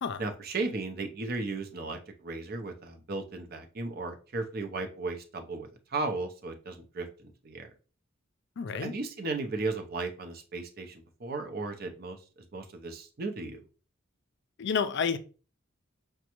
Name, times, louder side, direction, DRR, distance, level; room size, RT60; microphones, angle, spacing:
voice 1, 0.2-7.7 8.7-12.2 12.5-13.6, right 3 dB, 50° right, 0.6 m, -35 dB
voice 2, 8.6-8.9 14.6-15.2, left 6 dB, 60° left, 0.4 m, -30 dB
6.1 x 2.2 x 2.9 m
head